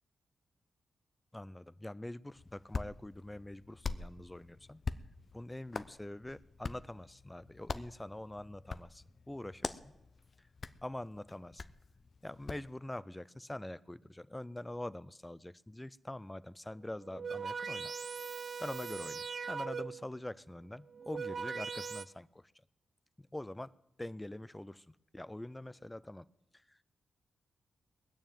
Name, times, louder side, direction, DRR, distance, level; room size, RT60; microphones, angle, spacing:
voice 1, 1.3-4.8 5.3-9.9 10.8-11.6 12.2-17.9 18.6-22.5 23.2-23.7 24.0-26.3 26.7-26.8, left 1 dB, 15° left, 17 dB, 0.5 m, -44 dB
Hands, 2.3-12.7, left 4 dB, 55° left, 0.7 m, -44 dB
sound 1, 17.0-20.1 20.9-22.0, right 5 dB, 55° right, 0.4 m, -40 dB
19.5 x 6.9 x 9.4 m, 0.89 s
supercardioid pair, 45°, 0 cm